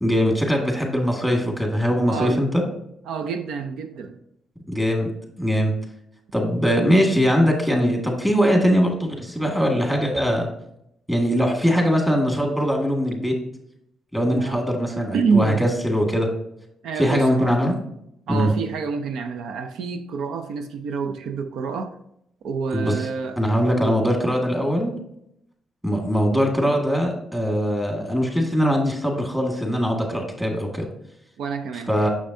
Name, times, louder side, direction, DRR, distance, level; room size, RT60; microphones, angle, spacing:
voice 1, 0.0-2.6 4.7-5.1 5.4-5.7 6.3-10.5 11.1-13.4 14.1-16.3 17.0-17.8 18.3-18.5 22.7-22.9 23.4-24.9 25.8-30.8 31.9-32.1, equal, 5° right, 1.8 m, -21 dB
voice 2, 2.1-2.5 3.1-4.2 14.3-14.6 15.1-15.6 16.8-17.6 18.3-22.0 22.4-23.4 23.8-24.0 31.4-31.9, right 5 dB, 80° right, 0.5 m, -27 dB
6.7 x 6.4 x 2.7 m
cardioid pair, 90°, 0 cm